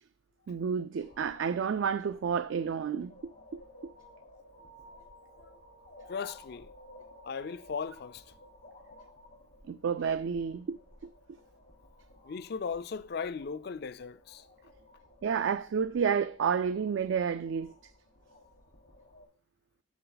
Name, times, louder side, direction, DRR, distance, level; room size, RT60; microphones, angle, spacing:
voice 1, 0.5-3.1 9.7-10.8 15.2-17.7, right 6 dB, 75° right, 0.4 m, -30 dB
sound 1, 1.0-19.3, left 1 dB, 85° left, 4.2 m, -56 dB
voice 2, 6.1-6.7 7.2-8.2 12.2-14.5, left 5 dB, 55° left, 0.4 m, -37 dB
12.5 x 4.2 x 3.9 m
head